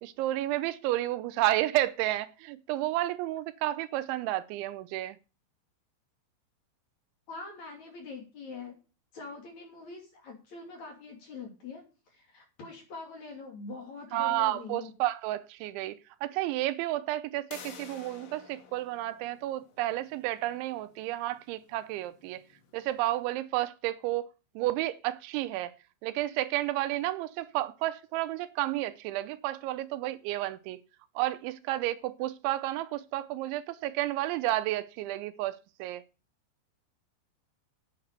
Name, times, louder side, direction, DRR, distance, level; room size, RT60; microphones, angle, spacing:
voice 1, 0.0-5.2 14.1-22.4 22.7-24.3 24.6-25.7 26.0-30.8 31.2-36.0, right 15 dB, 85° right, 3.0 m, -31 dB
voice 2, 7.3-8.8 9.1-14.9, left 4 dB, 45° left, 3.6 m, -44 dB
sound 1, 17.5-23.1, left 6 dB, 80° left, 4.3 m, -52 dB
8.7 x 8.2 x 6.6 m
omnidirectional pair, 5.3 m